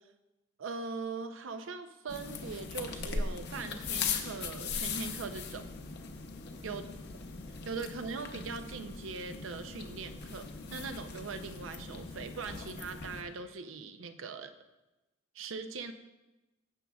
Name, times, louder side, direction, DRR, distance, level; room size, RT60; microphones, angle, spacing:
voice 1, 0.6-5.7 6.6-6.8 7.6-14.5 15.3-15.9, right 4 dB, 85° right, 9 dB, 0.5 m, -41 dB
sound 1, 2.1-13.2, left 5 dB, 60° left, 0.7 m, -39 dB
15.0 x 6.2 x 2.3 m, 1.1 s
head